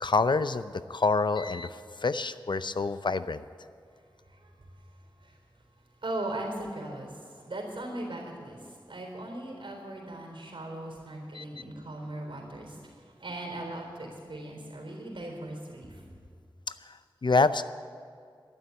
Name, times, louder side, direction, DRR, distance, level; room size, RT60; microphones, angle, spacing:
voice 1, 0.0-3.4 11.3-11.4 16.8-17.6, left 3 dB, 60° left, 13 dB, 0.6 m, -27 dB
voice 2, 6.0-7.2 7.5-8.6 8.9-12.8 13.2-15.9, right 1 dB, 80° right, 1 dB, 3.9 m, -38 dB
12.0 x 11.5 x 8.3 m, 2.2 s
wide cardioid pair, 50°, 9 cm